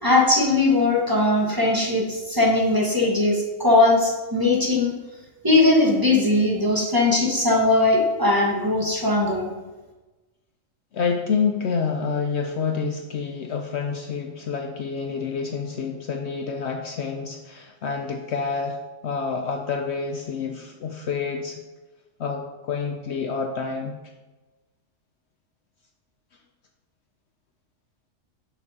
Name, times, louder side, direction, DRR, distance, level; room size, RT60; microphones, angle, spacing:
voice 1, 0.0-4.9 5.4-9.5, left 2 dB, 15° right, -3 dB, 1.5 m, -20 dB
voice 2, 10.9-18.8 19.0-21.6 22.2-24.0, left 5 dB, 60° left, 4 dB, 0.8 m, -28 dB
11.0 x 6.7 x 2.9 m, 1.2 s
omnidirectional pair, 1.4 m